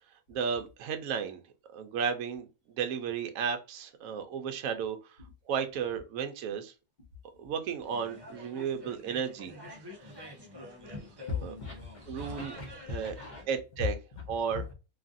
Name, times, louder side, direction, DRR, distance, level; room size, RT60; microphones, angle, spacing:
voice 1, 0.3-1.4 1.7-2.5 2.8-5.0 5.5-6.7 7.4-9.5 11.4-11.5 12.1-12.5 12.9-13.2 13.5-14.0 14.3-14.6, right 7 dB, 70° right, 7 dB, 0.9 m, -33 dB
sound 1, 7.8-13.5, left 1 dB, 25° right, 0.5 m, -47 dB
voice 2, 10.0-10.4 11.3-13.4 14.5-14.6, left 5 dB, 40° left, -1 dB, 0.8 m, -40 dB
3.0 x 2.4 x 2.5 m, 0.29 s
omnidirectional pair, 1.5 m